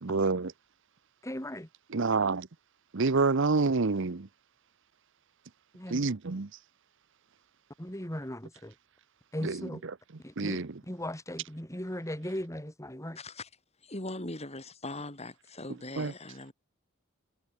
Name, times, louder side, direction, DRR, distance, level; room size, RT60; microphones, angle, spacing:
voice 1, 0.0-0.5 1.9-2.5 2.9-4.3 5.9-6.5 9.4-9.7 10.4-10.8 16.0-16.1, right 4 dB, 60° right, 0.8 m, -27 dB
voice 2, 1.2-1.7 5.7-6.0 7.8-8.7 9.3-9.8 10.2-13.2, left 1 dB, 15° left, 4.5 m, -38 dB
voice 3, 13.2-13.5 13.8-16.5, left 2 dB, 30° left, 4.9 m, -40 dB
head